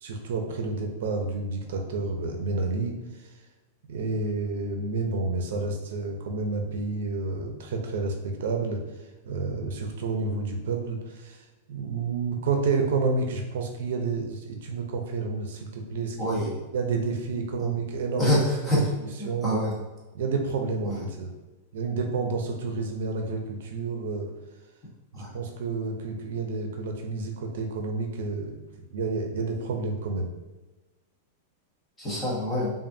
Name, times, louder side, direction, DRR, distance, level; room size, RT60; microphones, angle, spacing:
voice 1, 0.0-2.9 3.9-8.8 9.2-11.4 11.7-18.3 18.7-19.6 20.1-21.3 21.7-24.3 25.1-28.6 28.9-30.3, right 4 dB, 70° right, 3 dB, 0.6 m, -30 dB
voice 2, 16.2-16.5 17.6-17.7 18.2-18.9 19.2-19.8 20.8-21.0 25.1-25.3 32.0-32.7, equal, 10° left, -6 dB, 1.1 m, -26 dB
5.1 x 2.6 x 2.6 m, 1.2 s
supercardioid pair, 160°, 0 cm